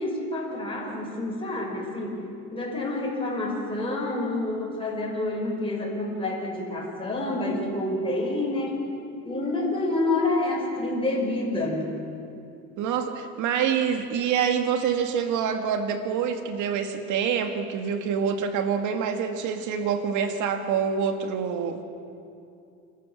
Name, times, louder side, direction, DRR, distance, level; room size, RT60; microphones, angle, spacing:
voice 1, 0.0-2.2 2.5-8.8 9.1-11.9, left 2 dB, 15° left, -2 dB, 5.8 m, -28 dB
voice 2, 12.8-21.8, right 7 dB, 70° right, 7 dB, 2.2 m, -26 dB
28.5 x 13.5 x 7.3 m, 2.6 s
supercardioid pair, 90°, 31 cm